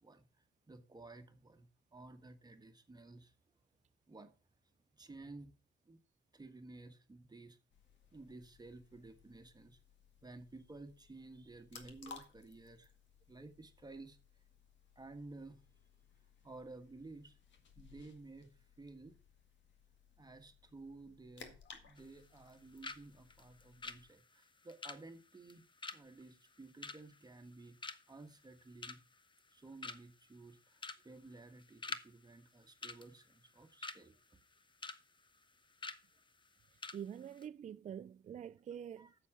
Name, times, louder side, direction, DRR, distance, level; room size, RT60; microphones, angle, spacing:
voice 1, 0.0-3.3 4.1-4.3 4.9-5.5 5.8-6.0 6.3-7.6 8.1-9.8 10.2-12.9 13.3-14.2 14.9-15.6 16.4-17.4 17.8-19.2 20.2-25.6 25.9-27.8 28.1-29.0 29.5-34.4 39.0-39.2, right 2 dB, 20° right, 1.4 m, -54 dB
sound 1, 7.7-24.1, left 6 dB, 65° left, 1.9 m, -60 dB
sound 2, 22.0-22.6 22.8-23.0 23.3-27.5 27.8-28.2 28.6-29.2 29.5-29.6 29.8-30.2 30.8-31.0 31.3-32.1 32.3-32.5 32.8-34.0 34.4-35.0 35.3-35.4 35.8-36.0 36.4-36.5 36.8-37.0 37.3-37.4, left 3 dB, 25° left, 0.8 m, -46 dB
voice 2, 36.9-39.1, right 9 dB, 40° right, 0.4 m, -46 dB
8.4 x 7.1 x 6.1 m
cardioid pair, 90°, 20 cm